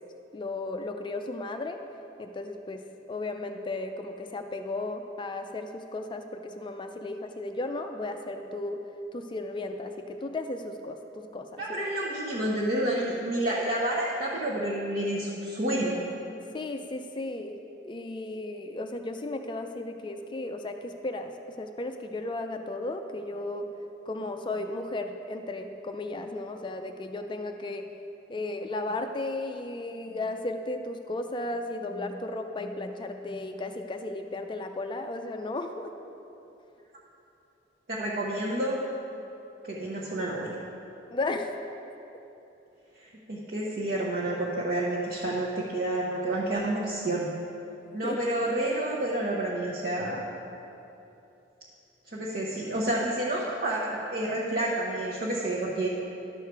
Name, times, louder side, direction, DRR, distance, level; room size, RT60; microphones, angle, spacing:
voice 1, 0.3-1.8 2.2-8.8 9.1-11.8 16.5-21.3 21.6-23.7 24.1-27.9 28.3-35.9 41.1-41.5 48.0-48.2, left 2 dB, 25° left, 6 dB, 0.4 m, -35 dB
voice 2, 11.6-16.0 37.9-38.8 39.6-40.5 43.0-47.3 47.9-50.2 52.1-55.9, right 1 dB, 50° right, -5 dB, 0.9 m, -29 dB
11.5 x 6.5 x 4.6 m, 2.9 s
head